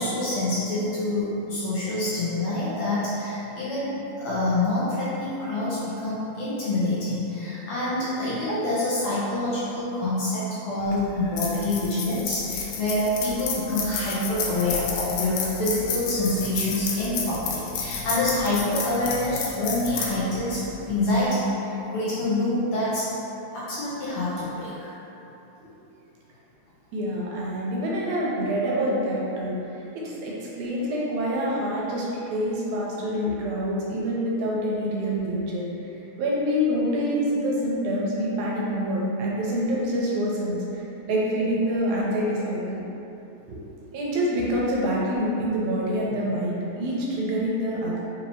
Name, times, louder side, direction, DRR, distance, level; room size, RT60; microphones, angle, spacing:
voice 1, 0.0-20.6 20.9-23.1 23.5-24.9, left 1 dB, 75° left, -10 dB, 1.8 m, -26 dB
sound 1, 10.8-21.3, left 5 dB, 90° left, 2.1 m, -32 dB
voice 2, 26.9-35.9 36.2-42.8 43.5-43.6 43.9-48.0, equal, 85° right, -5 dB, 2.0 m, -26 dB
5.2 x 2.8 x 2.8 m, 3.0 s
omnidirectional pair, 3.5 m